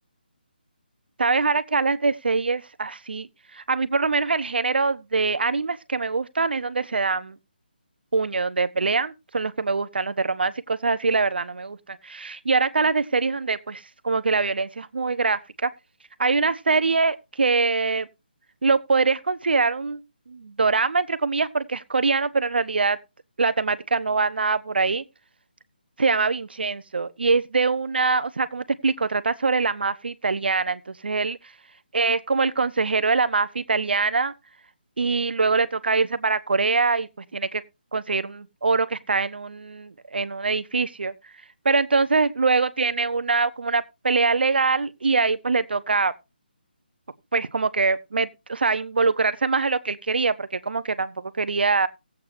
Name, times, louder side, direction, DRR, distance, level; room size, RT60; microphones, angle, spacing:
voice 1, 1.2-7.4 8.1-15.7 16.2-18.1 18.6-23.0 23.4-25.0 26.0-31.4 31.9-34.3 35.0-37.6 37.9-41.1 41.6-46.1 47.3-51.9, right 4 dB, 75° right, 0.9 m, -23 dB
18.5 x 8.3 x 2.6 m
figure-of-eight pair, 160°, 6 cm